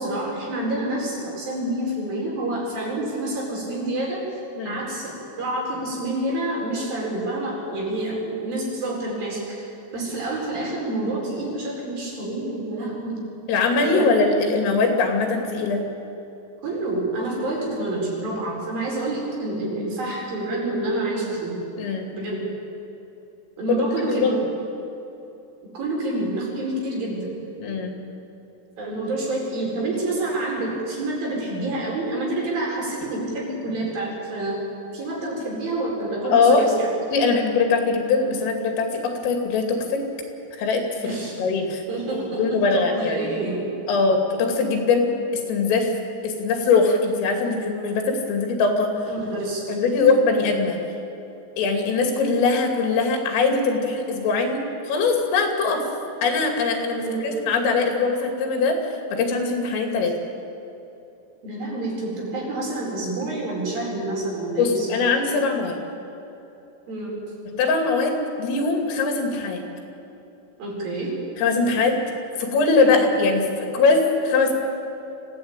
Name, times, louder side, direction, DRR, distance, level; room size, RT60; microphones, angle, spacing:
voice 1, 0.0-5.1 5.4-13.2 13.8-14.1 16.6-21.6 22.1-22.4 23.6-24.3 25.7-27.4 28.8-34.6 34.9-36.9 41.0-41.4 41.9-43.6 49.1-49.8 57.0-57.3 61.4-65.0 66.9-67.2 70.6-71.2, right 2 dB, 45° right, -2 dB, 6.4 m, -28 dB
voice 2, 13.5-15.8 21.8-22.1 23.9-24.4 27.6-28.0 36.3-36.7 37.1-40.0 40.6-41.0 41.4-41.8 42.4-43.3 43.9-45.9 46.2-48.9 49.7-50.8 51.6-55.8 56.2-58.8 59.1-60.2 64.6-65.8 67.6-69.6 71.4-72.0 72.4-74.5, left 4 dB, 90° left, 3 dB, 5.1 m, -21 dB
25.0 x 16.5 x 8.9 m, 2.9 s
omnidirectional pair, 5.7 m